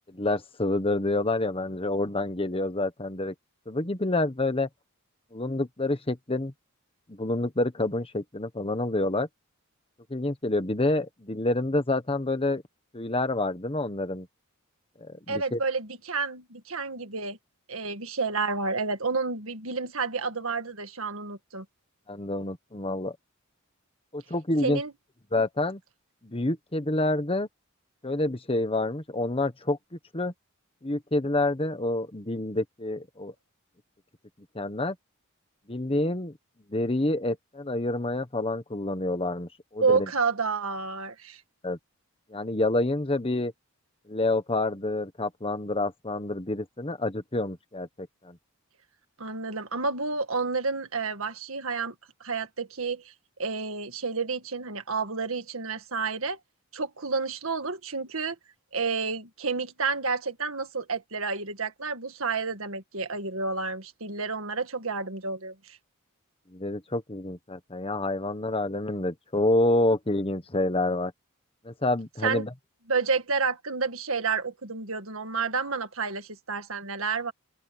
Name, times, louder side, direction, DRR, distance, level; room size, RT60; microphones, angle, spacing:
voice 1, 0.0-3.3 3.7-4.7 5.3-6.5 7.1-9.3 10.1-12.6 12.9-14.3 15.0-15.6 22.1-23.1 24.1-24.8 25.3-25.8 26.2-27.5 28.0-29.8 30.1-30.3 30.8-33.3 34.5-34.9 35.7-36.3 36.7-40.1 41.6-41.8 42.3-43.5 44.1-48.4 66.5-71.1 71.6-72.5, left 2 dB, 25° left, 1.3 m, -28 dB
voice 2, 15.3-17.4 17.7-21.7 24.6-24.9 39.8-41.4 49.2-51.9 52.2-53.1 53.4-56.4 56.7-58.4 58.7-65.8 72.2-72.4 72.9-77.3, right 4 dB, 65° right, 1.9 m, -30 dB
open air
head